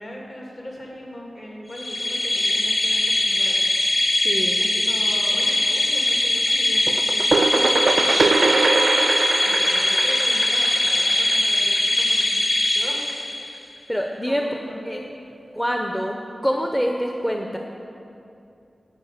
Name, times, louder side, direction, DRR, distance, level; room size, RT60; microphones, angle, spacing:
voice 1, 0.0-3.6 4.3-7.3 8.0-8.2 9.4-12.4 12.7-13.0 14.3-15.1, equal, 50° left, -3 dB, 2.6 m, -39 dB
sound 1, 1.7-13.6, left 1 dB, 65° left, 1.4 m, -21 dB
voice 2, 4.2-4.6 13.9-14.4 14.8-15.0 15.5-16.1 16.4-17.6, equal, 10° left, 2 dB, 0.6 m, -25 dB
sound 2, 6.9-12.4, right 4 dB, 70° right, 0.4 m, -23 dB
11.5 x 4.9 x 8.5 m, 2.7 s
wide cardioid pair, 85°, 0 cm